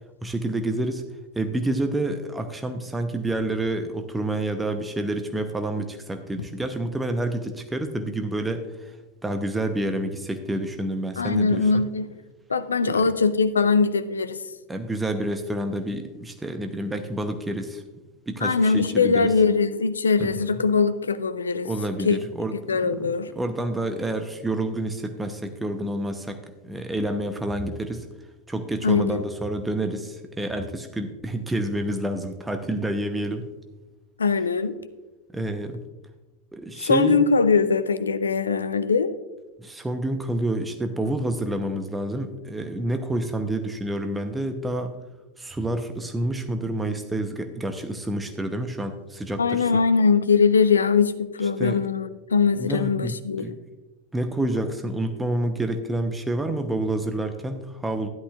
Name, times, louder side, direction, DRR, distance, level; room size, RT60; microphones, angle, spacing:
voice 1, 0.2-1.1 1.3-9.0 9.2-11.9 12.8-13.1 14.7-17.8 18.3-19.3 20.2-20.5 21.6-28.1 28.5-33.5 35.3-35.8 36.5-37.2 39.6-44.9 45.4-49.7 51.6-51.8 52.6-53.6 54.1-58.1, right 1 dB, 10° right, 7 dB, 0.8 m, -28 dB
voice 2, 11.2-12.1 12.5-14.4 18.4-21.7 22.0-22.2 22.7-23.3 28.8-29.2 34.2-34.7 36.8-39.1 49.4-53.5, left 5 dB, 80° left, 13 dB, 0.5 m, -21 dB
12.5 x 11.0 x 2.4 m, 1.1 s
figure-of-eight pair, 85°, 0 cm